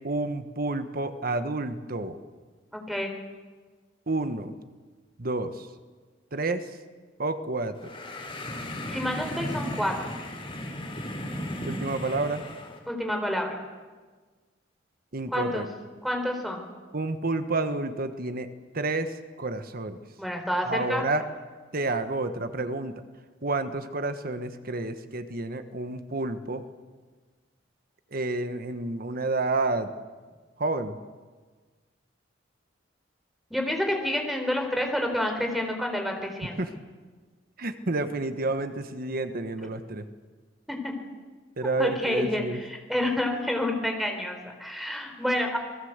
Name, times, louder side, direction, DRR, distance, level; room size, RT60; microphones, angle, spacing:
voice 1, 0.0-2.2 4.1-4.5 5.2-5.7 6.3-6.7 7.2-7.9 11.6-12.4 15.1-15.7 16.9-18.5 18.7-20.0 20.6-21.2 21.7-22.9 23.4-26.6 28.1-29.9 30.6-31.0 36.6-36.7 37.6-40.1 41.6-42.6, right 2 dB, 50° right, 9 dB, 1.3 m, -30 dB
voice 2, 2.7-3.1 8.9-10.1 12.9-13.6 15.3-15.6 16.0-16.6 20.2-21.0 33.5-36.5 40.7-40.9 41.8-45.6, left 1 dB, ahead, 3 dB, 4.1 m, -29 dB
sound 1, 7.8-12.8, left 1 dB, 30° left, 3.9 m, -35 dB
28.0 x 20.0 x 8.1 m, 1.4 s
head